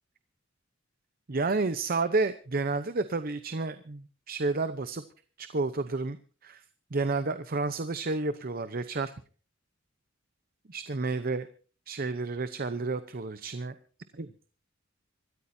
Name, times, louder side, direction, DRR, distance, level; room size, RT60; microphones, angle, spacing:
voice 1, 1.3-5.0 5.4-6.2 6.4-6.6 6.9-9.1 10.7-11.5 11.9-13.7 14.1-14.3, right 3 dB, 45° right, 11 dB, 0.8 m, -30 dB
26.0 x 14.0 x 2.7 m, 0.38 s
head